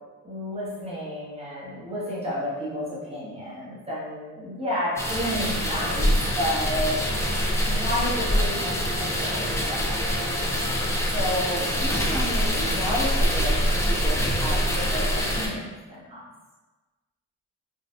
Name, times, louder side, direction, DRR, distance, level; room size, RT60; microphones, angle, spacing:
voice 1, 0.2-7.0 7.7-10.6 11.1-16.2, equal, 20° right, -7 dB, 1.3 m, -31 dB
sound 1, 5.0-15.5, equal, 10° left, 0.5 m, -25 dB
4.0 x 2.5 x 2.5 m, 1.2 s
cardioid pair, 90°, 30 cm